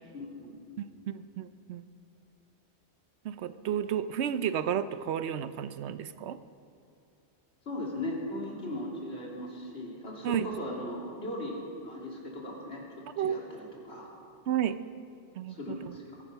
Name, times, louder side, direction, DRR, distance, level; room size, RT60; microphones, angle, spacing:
voice 1, 0.1-0.6 7.6-12.8 13.2-14.1 15.5-16.2, left 1 dB, 70° left, -3 dB, 3.1 m, -38 dB
voice 2, 0.8-1.8 3.2-6.4 10.2-10.5 13.2-13.5 14.5-14.8 15.4-15.6 15.8-15.9, right 9 dB, 75° right, 12 dB, 0.9 m, -32 dB
21.5 x 9.9 x 5.7 m, 2.5 s
omnidirectional pair, 1.1 m